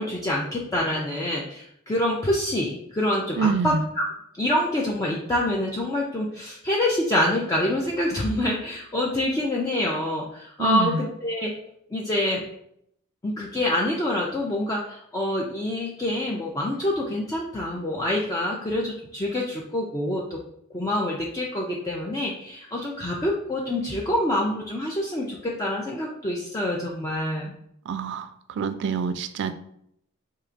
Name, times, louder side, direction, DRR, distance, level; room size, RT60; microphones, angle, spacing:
voice 1, 0.0-4.0 4.4-11.6 11.9-12.4 13.2-20.4 20.7-27.5, left 1 dB, 15° left, -3 dB, 0.4 m, -26 dB
voice 2, 3.4-3.8 10.6-11.0 27.9-28.3 28.6-29.5, right 5 dB, 55° right, 11 dB, 0.3 m, -25 dB
4.5 x 2.8 x 2.5 m, 0.72 s
head